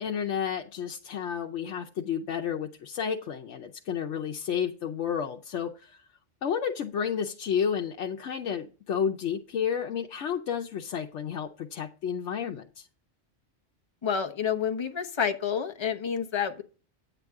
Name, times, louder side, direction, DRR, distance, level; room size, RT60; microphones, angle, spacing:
voice 1, 0.0-6.0 6.4-12.9, left 7 dB, 85° left, 1.0 m, -31 dB
voice 2, 14.0-16.6, left 7 dB, 25° left, 0.9 m, -29 dB
9.8 x 8.1 x 3.5 m
omnidirectional pair, 1.2 m